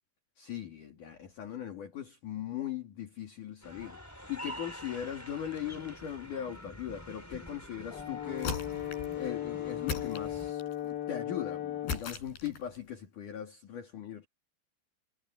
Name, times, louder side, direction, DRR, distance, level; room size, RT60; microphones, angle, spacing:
voice 1, 0.4-4.0 4.3-8.6 9.1-14.3, left 10 dB, 50° left, 4.1 m, -39 dB
sound 1, 3.6-10.5, equal, 5° left, 4.2 m, -47 dB
Brass instrument, 7.9-12.1, left 12 dB, 85° left, 5.0 m, -37 dB
sound 2, 8.4-9.2 9.9-10.8 11.9-12.8, left 6 dB, 70° left, 6.4 m, -38 dB
omnidirectional pair, 4.8 m